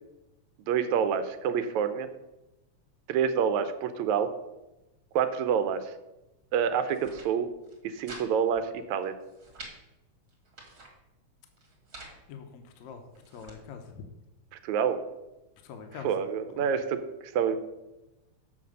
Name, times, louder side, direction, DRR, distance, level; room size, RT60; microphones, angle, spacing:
voice 1, 0.7-2.1 3.1-4.3 5.1-5.9 6.5-7.5 7.8-9.1 14.6-15.0 16.0-17.6, right 7 dB, 80° right, 10 dB, 2.0 m, -27 dB
sound 1, 6.8-7.3 7.6-8.3 8.5-8.6 9.0-9.7 10.3-10.9 11.6-12.2 12.8-13.6, right 2 dB, 35° right, 2.0 m, -47 dB
voice 2, 12.3-14.0 15.6-16.1 16.5-16.7, left 6 dB, 75° left, 6 dB, 2.1 m, -44 dB
7.4 x 5.9 x 6.6 m, 0.98 s
omnidirectional pair, 3.3 m